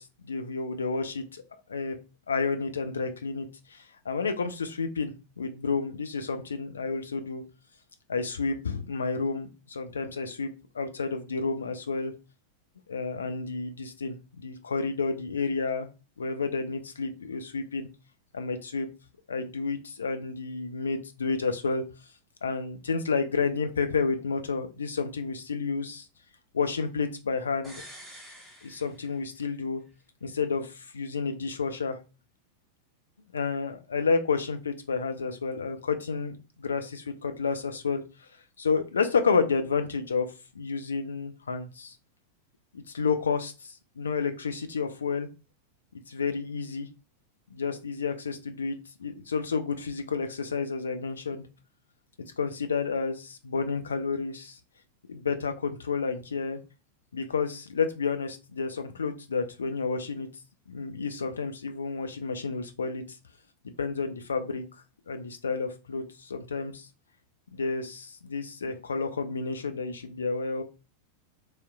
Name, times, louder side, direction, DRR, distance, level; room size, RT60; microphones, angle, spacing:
voice 1, 0.0-1.4 1.7-2.0 2.3-7.4 8.1-12.1 12.9-15.9 16.2-17.9 18.3-18.9 19.3-21.8 22.4-26.1 26.5-27.8 28.6-29.8 30.2-32.0 33.3-38.0 38.6-40.3 40.5-42.0 42.7-45.3 46.1-46.9 47.5-51.4 52.4-54.6 55.1-56.6 57.1-60.3 60.7-63.0 63.6-64.6 65.1-66.9 67.5-70.6, left 4 dB, 70° left, 7 dB, 0.5 m, -30 dB
sound 1, 27.6-29.6 29.9-30.0, equal, 5° left, 1.3 m, -48 dB
3.1 x 2.9 x 2.3 m, 0.31 s
figure-of-eight pair, 90°, 0 cm